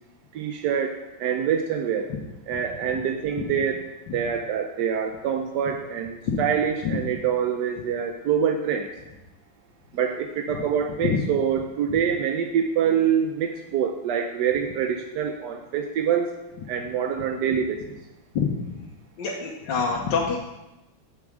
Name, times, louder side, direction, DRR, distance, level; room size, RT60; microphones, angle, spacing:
voice 1, 0.3-2.1 2.5-8.9 9.9-16.3 16.7-17.8, right 8 dB, 80° right, 5 dB, 0.9 m, -25 dB
voice 2, 18.3-18.8 19.2-20.4, left 5 dB, 60° left, -2 dB, 1.5 m, -26 dB
6.9 x 5.9 x 6.3 m, 0.97 s
omnidirectional pair, 2.4 m